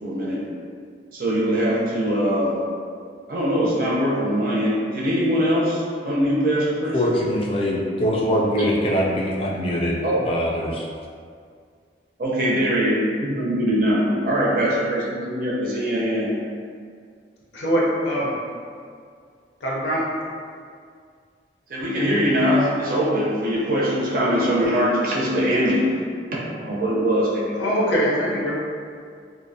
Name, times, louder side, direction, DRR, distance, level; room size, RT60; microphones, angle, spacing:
voice 1, 0.0-0.5 1.1-2.6 3.3-7.0 10.0-10.2 12.2-16.3 21.7-26.0 26.3-27.4, equal, 50° right, -5 dB, 0.4 m, -22 dB
voice 2, 6.9-10.0 10.2-10.9, equal, 30° left, -3 dB, 0.3 m, -23 dB
voice 3, 17.5-18.3 19.6-20.0 27.6-28.5, equal, 80° left, -5 dB, 0.5 m, -22 dB
2.5 x 2.0 x 2.6 m, 2.2 s
head